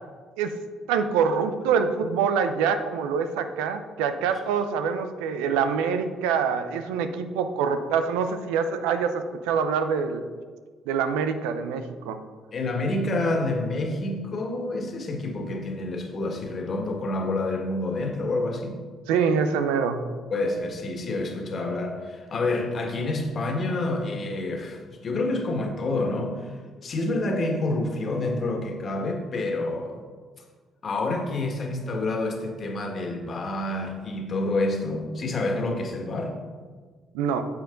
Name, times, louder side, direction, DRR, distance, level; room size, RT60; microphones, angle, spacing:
voice 1, 0.9-10.3 10.9-12.2 19.1-20.0 37.1-37.4, right 6 dB, 85° right, 9 dB, 0.6 m, -25 dB
voice 2, 12.5-18.8 20.3-26.5 26.8-30.0 30.8-36.3, left 2 dB, 50° left, 2 dB, 1.9 m, -28 dB
9.7 x 7.1 x 3.9 m, 1.5 s
hypercardioid pair, 55°, 0 cm